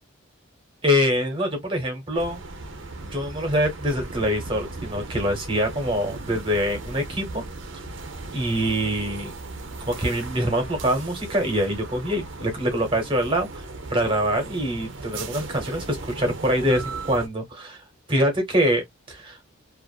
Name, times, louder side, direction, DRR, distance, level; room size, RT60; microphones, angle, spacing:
voice 1, 0.8-2.4 3.1-7.4 8.3-9.3 9.9-13.6 13.9-17.8 18.1-19.4, equal, 25° right, 1.1 m, -24 dB
sound 1, 2.1-17.3, right 3 dB, 65° right, 0.7 m, -37 dB
2.5 x 2.4 x 2.3 m
head